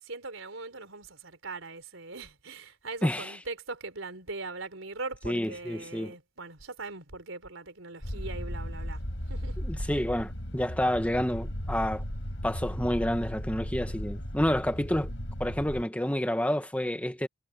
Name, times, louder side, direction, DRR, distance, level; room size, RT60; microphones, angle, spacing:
voice 1, 0.1-9.0 9.3-9.6, right 3 dB, 85° right, 3.9 m, -40 dB
voice 2, 3.0-3.4 5.2-6.1 9.6-12.0 12.4-15.1 15.4-17.3, equal, 5° left, 1.4 m, -29 dB
sound 1, 8.0-15.8, equal, 65° left, 7.3 m, -36 dB
head